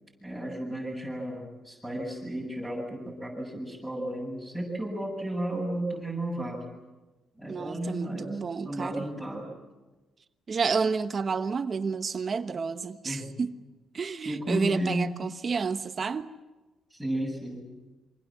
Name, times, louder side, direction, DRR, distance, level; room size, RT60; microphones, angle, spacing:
voice 1, 0.2-6.6 7.4-9.5 13.0-13.3 14.2-15.1 16.9-17.7, right 1 dB, ahead, 7.9 m, -33 dB
voice 2, 7.5-9.0 10.5-13.5 13.9-16.3, right 5 dB, 40° right, 1.2 m, -30 dB
26.5 x 25.0 x 7.6 m
cardioid pair, 90°, 0 cm